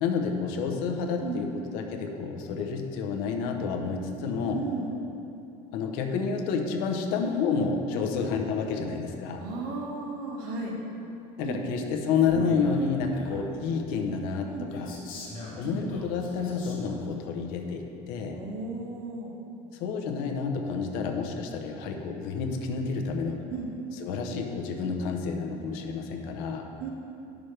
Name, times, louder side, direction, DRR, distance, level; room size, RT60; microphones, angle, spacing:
voice 1, 0.0-4.6 5.7-9.4 11.4-14.9 15.6-18.4 19.8-23.4 24.0-26.7, left 5 dB, 85° left, 4 dB, 0.8 m, -29 dB
voice 2, 4.5-5.0 7.9-8.1 9.4-10.8 11.4-11.6 12.3-12.4 14.5-14.7 15.6-15.8 18.3-19.4 23.5-23.7 26.8-26.9, right 4 dB, 85° right, -1 dB, 1.5 m, -35 dB
Male speech man speaking, 12.1-13.5 14.7-17.1, left 1 dB, 60° left, 2.0 m, -42 dB
10.5 x 6.2 x 3.3 m, 2.7 s
cardioid pair, 150°, 16 cm